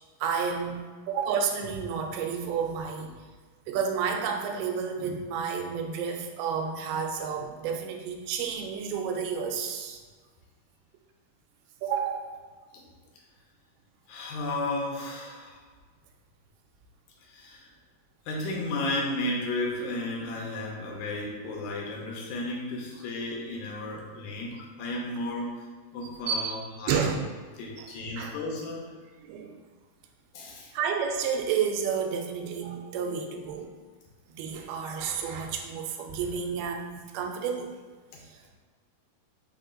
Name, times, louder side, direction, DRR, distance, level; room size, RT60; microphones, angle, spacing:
voice 1, 0.2-3.2 3.7-10.0 11.8-12.4 26.0-26.6 26.9-27.3 27.8-27.9 28.2-28.4 29.2-29.6 30.7-33.7 34.3-37.7 38.2-38.6, right 6 dB, 90° right, 3 dB, 2.5 m, -31 dB
voice 2, 14.1-15.6 17.2-17.7 18.3-25.6 25.9-27.1 27.6-29.0 30.3-30.7 38.1-38.2, left 2 dB, 75° left, -2 dB, 1.9 m, -33 dB
5.8 x 2.2 x 3.7 m, 1.5 s
omnidirectional pair, 4.3 m